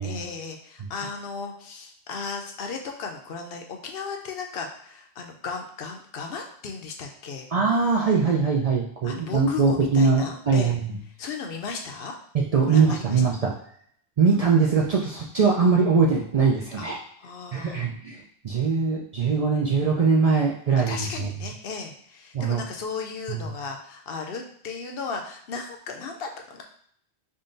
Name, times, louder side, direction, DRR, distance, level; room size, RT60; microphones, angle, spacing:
voice 1, 0.0-7.5 9.0-10.7 11.2-12.1 12.7-13.2 16.8-17.9 20.9-26.6, left 5 dB, 70° left, 3 dB, 0.8 m, -35 dB
voice 2, 7.5-11.0 12.3-13.5 14.2-17.0 17.5-21.3 22.3-22.6 23.3-23.5, right 5 dB, 50° right, -3 dB, 0.4 m, -22 dB
3.7 x 2.2 x 3.8 m, 0.63 s
omnidirectional pair, 1.1 m